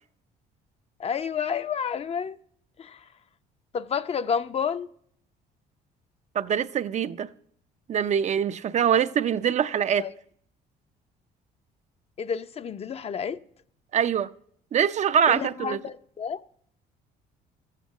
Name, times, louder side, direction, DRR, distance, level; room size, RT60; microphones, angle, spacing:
voice 1, 1.0-2.4 2.8-3.0 3.7-4.9 8.9-9.0 10.0-10.1 12.2-13.4 15.3-16.4, left 7 dB, 35° left, 0.6 m, -30 dB
voice 2, 6.3-7.3 7.9-10.1 13.9-14.3 14.7-15.8, right 8 dB, 45° right, 0.5 m, -24 dB
13.0 x 8.3 x 8.1 m
cardioid pair, 110°, 17 cm